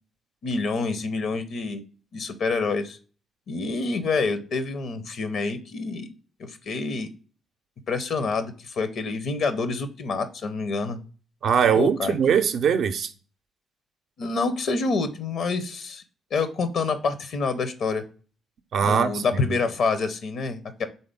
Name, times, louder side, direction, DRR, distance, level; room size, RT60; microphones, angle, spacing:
voice 1, 0.4-1.8 2.1-3.0 3.5-6.1 6.4-7.1 7.9-11.0 11.7-12.1 14.2-16.0 16.3-18.0 18.8-20.9, left 4 dB, 60° left, 0.6 m, -27 dB
voice 2, 11.4-13.1 18.7-19.6, right 7 dB, 60° right, 0.5 m, -22 dB
4.1 x 3.7 x 3.4 m
hypercardioid pair, 45°, 0 cm